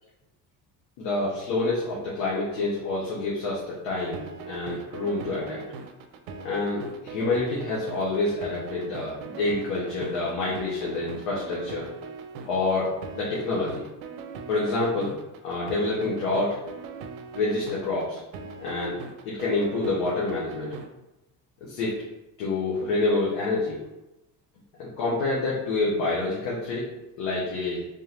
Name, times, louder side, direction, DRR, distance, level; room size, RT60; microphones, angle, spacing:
voice 1, 1.0-4.2 4.5-5.6 6.4-11.9 12.4-13.8 14.5-15.1 15.4-16.6 17.3-18.2 18.6-19.0 19.2-20.7 21.6-22.0 22.4-23.8 24.8-26.9 27.2-27.8, left 2 dB, 70° left, -6 dB, 1.2 m, -27 dB
sound 1, 3.8-20.9, right 5 dB, 75° right, 0.6 m, -40 dB
3.6 x 2.9 x 3.3 m, 0.97 s
hypercardioid pair, 65°, 49 cm